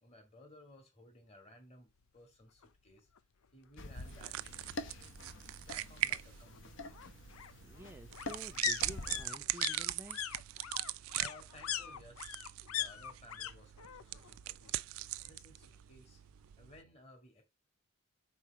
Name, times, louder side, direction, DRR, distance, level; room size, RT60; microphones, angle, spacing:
voice 1, 0.0-3.1 3.5-5.2 5.7-7.1 11.2-14.8 15.3-16.2 16.6-17.4, left 1 dB, 30° left, 2.0 m, -59 dB
sound 1, 2.6-2.7 3.1-3.2 3.4-4.4 5.7-13.5 13.8-14.4 14.6-15.7 16.0-16.1, left 10 dB, 85° left, 0.6 m, -42 dB
sound 2, 3.8-9.2, left 2 dB, 60° left, 0.9 m, -47 dB
sound 3, 4.0-16.8, right 15 dB, 75° right, 0.3 m, -41 dB
voice 2, 7.6-10.2, right 1 dB, 10° right, 0.5 m, -51 dB
4.6 x 4.3 x 5.8 m
head